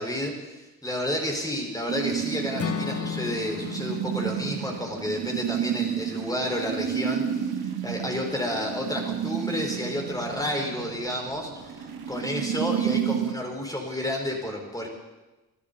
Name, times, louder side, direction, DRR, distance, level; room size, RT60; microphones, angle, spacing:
voice 1, 0.0-14.9, left 1 dB, 10° left, 0 dB, 5.1 m, -31 dB
sound 1, 1.9-13.3, right 9 dB, 60° right, 2.0 m, -31 dB
Acoustic guitar / Strum, 2.6-6.7, left 7 dB, 35° left, 0.8 m, -36 dB
23.5 x 13.5 x 4.2 m, 1.1 s
hypercardioid pair, 45°, 42 cm